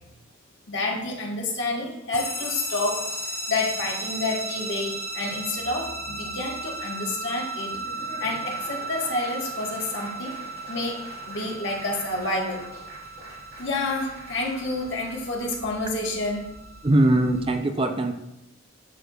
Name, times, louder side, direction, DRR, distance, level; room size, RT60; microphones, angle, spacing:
voice 1, 0.7-3.2 3.5-7.8 8.2-10.3 10.7-12.6 13.6-16.4, left 2 dB, 65° left, -1 dB, 1.5 m, -29 dB
sound 1, 2.1-17.5, right 2 dB, 15° left, 2.8 m, -36 dB
Laughter / Applause, 7.5-15.3, right 1 dB, 50° right, 2.3 m, -45 dB
voice 2, 16.8-18.1, right 1 dB, 25° right, 7 dB, 0.4 m, -21 dB
11.5 x 6.4 x 2.4 m, 0.87 s
head